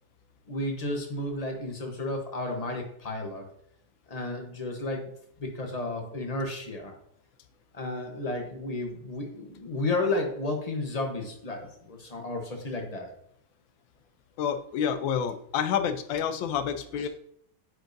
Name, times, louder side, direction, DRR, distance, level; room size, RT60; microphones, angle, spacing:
voice 1, 0.5-3.5 4.1-5.1 5.4-6.9 7.7-13.1 17.0-17.1, left 2 dB, 35° left, 3 dB, 0.6 m, -32 dB
voice 2, 14.4-17.1, left 8 dB, 80° left, 10 dB, 1.4 m, -28 dB
9.6 x 4.5 x 2.6 m, 0.70 s
omnidirectional pair, 2.1 m